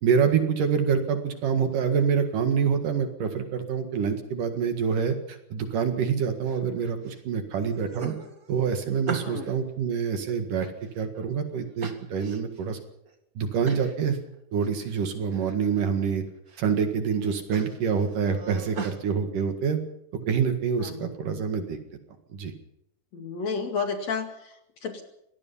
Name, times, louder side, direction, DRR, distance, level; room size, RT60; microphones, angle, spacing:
voice 1, 0.0-8.1 8.5-12.8 13.4-14.2 14.5-16.2 16.6-19.8 20.1-21.8 22.3-22.5, right 6 dB, 60° right, 7 dB, 3.1 m, -26 dB
sound 1, 6.4-7.2 7.6-9.6 10.1-11.2 11.8-12.6 13.1-13.2 13.6-14.0 14.3-15.0 15.3-15.9 16.3-16.8 17.1-19.0, right 5 dB, 40° right, 1.3 m, -39 dB
voice 2, 9.2-9.5 20.8-21.1 23.1-25.0, left 5 dB, 50° left, 5 dB, 3.1 m, -32 dB
24.5 x 19.0 x 5.6 m, 0.80 s
omnidirectional pair, 4.6 m